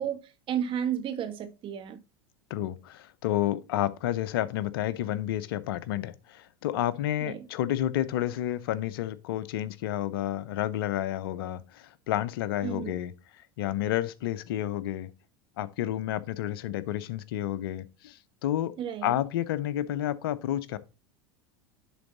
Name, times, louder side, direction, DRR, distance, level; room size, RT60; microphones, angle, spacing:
voice 1, 0.0-2.0 7.2-7.4 12.6-12.9 18.8-19.1, right 9 dB, 45° right, 1.5 m, -32 dB
voice 2, 2.5-15.1 15.6-18.7 19.0-20.8, left 12 dB, 70° left, 0.7 m, -30 dB
10.5 x 4.0 x 4.1 m
hypercardioid pair, 90°, 13 cm